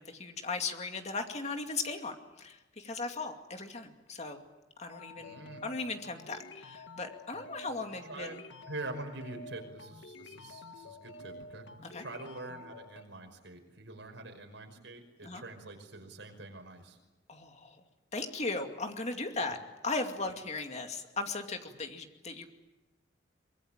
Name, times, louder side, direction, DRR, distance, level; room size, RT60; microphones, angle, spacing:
voice 1, 0.0-4.4 4.8-8.4 11.8-12.0 15.2-15.4 17.3-17.8 18.1-19.6 19.8-22.5, left 3 dB, 35° left, 5 dB, 2.4 m, -37 dB
sound 1, 4.9-13.0, left 2 dB, 85° left, 1.9 m, -49 dB
voice 2, 5.2-5.6 8.0-8.4 8.7-11.7 12.0-17.0 19.5-19.6, right 2 dB, 85° right, 4 dB, 5.6 m, -45 dB
24.0 x 22.5 x 9.0 m, 1.1 s
head